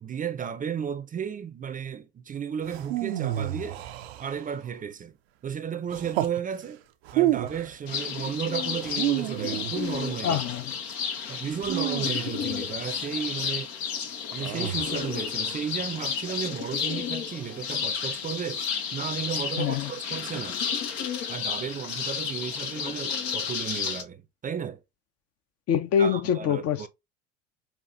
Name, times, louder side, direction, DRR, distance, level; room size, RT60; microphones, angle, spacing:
voice 1, 0.0-3.8 4.2-5.1 5.4-6.8 7.1-10.4 11.3-13.7 14.3-18.6 18.9-20.6 21.3-24.8 26.0-26.9, right 8 dB, 25° right, 0.5 m, -33 dB
sound 1, 2.7-4.7 5.9-6.4 7.0-7.7 8.8-10.1 11.6-12.8 14.4-15.2, right 14 dB, 80° right, 0.6 m, -30 dB
sound 2, 7.9-24.0, left 7 dB, 80° left, 0.9 m, -32 dB
voice 2, 10.2-10.7 19.6-19.9 25.7-26.9, left 8 dB, 50° left, 0.7 m, -25 dB
5.7 x 2.4 x 2.6 m
hypercardioid pair, 75°, 32 cm